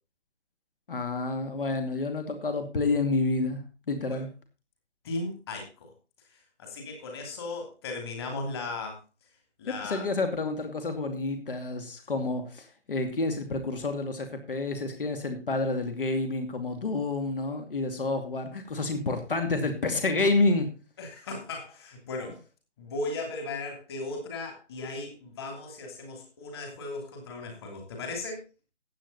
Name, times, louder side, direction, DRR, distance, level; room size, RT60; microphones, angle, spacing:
voice 1, 0.9-3.6 3.9-4.3 9.6-20.7, left 3 dB, 50° left, 7 dB, 2.7 m, -29 dB
voice 2, 5.0-5.7 6.6-9.0 9.6-10.1 21.0-22.4 22.8-28.4, left 3 dB, 20° left, 3 dB, 2.9 m, -36 dB
15.0 x 8.6 x 4.1 m, 0.31 s
figure-of-eight pair, 165°, 36 cm